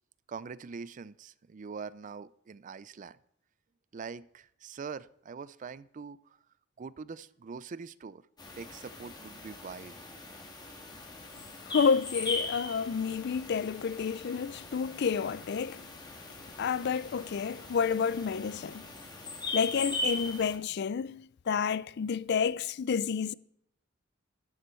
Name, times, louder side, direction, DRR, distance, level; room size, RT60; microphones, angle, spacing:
voice 1, 0.3-3.2 3.9-6.4 6.8-8.3 8.6-10.0, right 5 dB, 40° right, 0.4 m, -43 dB
sound 1, 8.4-20.6, left 2 dB, 20° left, 1.8 m, -40 dB
voice 2, 11.7-15.8 16.6-18.9 19.5-23.3, left 6 dB, 55° left, 0.4 m, -30 dB
12.0 x 12.0 x 4.4 m
head